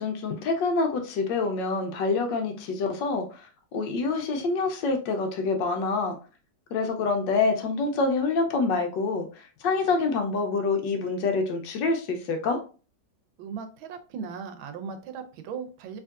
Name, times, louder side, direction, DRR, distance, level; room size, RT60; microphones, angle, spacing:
voice 1, 0.0-3.5 3.7-6.2 6.7-12.6, left 4 dB, 75° left, 5 dB, 1.2 m, -26 dB
voice 2, 13.4-16.0, right 6 dB, 85° right, 8 dB, 1.4 m, -37 dB
3.5 x 2.9 x 2.3 m, 0.35 s
omnidirectional pair, 2.1 m